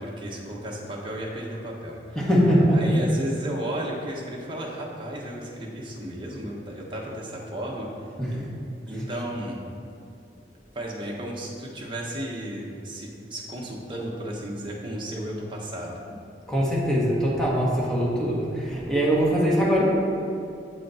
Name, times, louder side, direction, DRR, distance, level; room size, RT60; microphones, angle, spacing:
voice 1, 0.0-2.3 2.7-7.9 8.3-8.4 8.9-9.6 10.7-16.0, right 1 dB, 30° right, -3 dB, 1.3 m, -34 dB
voice 2, 2.1-2.8 8.2-8.4 8.9-9.0 16.5-19.9, equal, 5° left, -6 dB, 1.6 m, -22 dB
7.8 x 6.2 x 4.3 m, 2.7 s
head